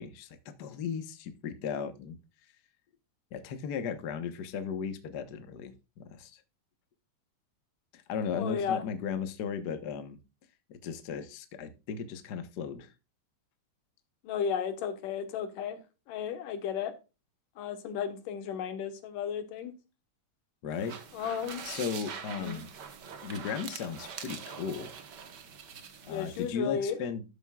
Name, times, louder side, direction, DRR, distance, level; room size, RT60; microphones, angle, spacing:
voice 1, 0.0-2.2 3.3-6.4 7.9-10.2 10.7-12.9 20.6-21.0 21.6-22.7 23.2-24.9 26.0-27.2, left 6 dB, 70° left, 0.9 m, -36 dB
voice 2, 8.4-8.8 14.2-15.8 16.1-16.9 17.6-19.7 21.1-21.6 22.3-22.6 26.1-27.0, left 7 dB, 90° left, 2.9 m, -34 dB
sound 1, 20.7-26.5, right 6 dB, 60° right, 1.1 m, -44 dB
13.0 x 7.6 x 2.4 m
omnidirectional pair, 3.7 m